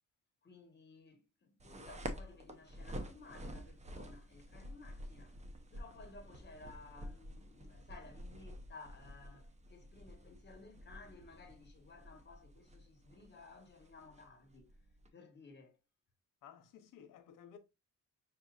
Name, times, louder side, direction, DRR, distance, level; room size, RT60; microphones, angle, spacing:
voice 1, 0.4-5.3 5.7-14.7 15.1-15.8, left 3 dB, 35° left, 1.3 m, -57 dB
sound 1, 1.6-15.1, equal, 20° right, 0.7 m, -50 dB
voice 2, 16.4-17.6, left 9 dB, 80° left, 0.9 m, -56 dB
5.9 x 2.8 x 2.4 m
cardioid pair, 115°, 32 cm